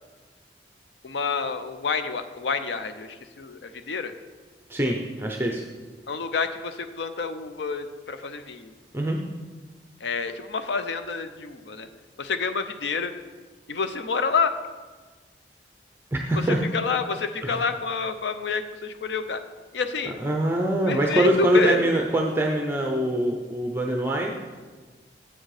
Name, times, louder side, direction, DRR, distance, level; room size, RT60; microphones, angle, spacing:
voice 1, 1.0-4.1 6.1-8.7 10.0-11.9 12.2-13.1 13.7-14.5 16.5-19.4 19.7-20.2 20.9-21.9, left 5 dB, 80° left, 9 dB, 0.5 m, -28 dB
voice 2, 4.7-5.6 8.9-9.2 16.1-16.6 17.4-17.6 20.0-24.3, right 1 dB, 15° right, 1 dB, 0.6 m, -24 dB
7.5 x 6.4 x 4.8 m, 1.4 s
head